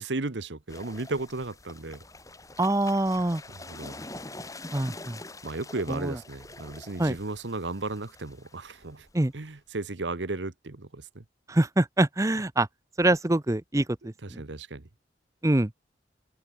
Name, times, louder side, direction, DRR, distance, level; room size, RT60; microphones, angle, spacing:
voice 1, 0.0-2.0 3.5-4.0 5.4-9.1 9.3-11.2 14.0-14.9, right 3 dB, 80° right, 1.2 m, -35 dB
sound 1, 0.7-9.6, left 2 dB, 20° left, 7.1 m, -45 dB
voice 2, 2.6-3.4 4.7-5.2 5.9-6.1 7.0-7.2 9.1-9.3 11.5-12.7 13.0-14.4 15.4-15.7, right 1 dB, 15° right, 0.7 m, -25 dB
open air
head